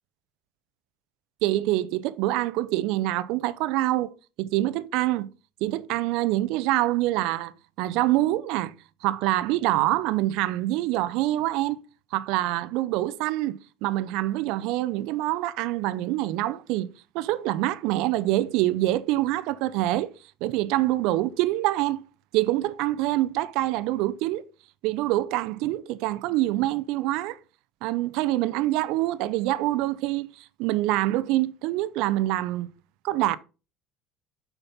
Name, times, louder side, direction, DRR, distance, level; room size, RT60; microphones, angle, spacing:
voice 1, 1.4-4.1 4.4-5.3 5.6-8.7 9.0-11.8 12.1-20.1 20.4-22.0 22.3-24.4 24.8-27.4 27.8-32.7 33.0-33.4, right 16 dB, 75° right, 0.5 m, -25 dB
6.7 x 5.9 x 4.1 m
cardioid pair, 130°, 0 cm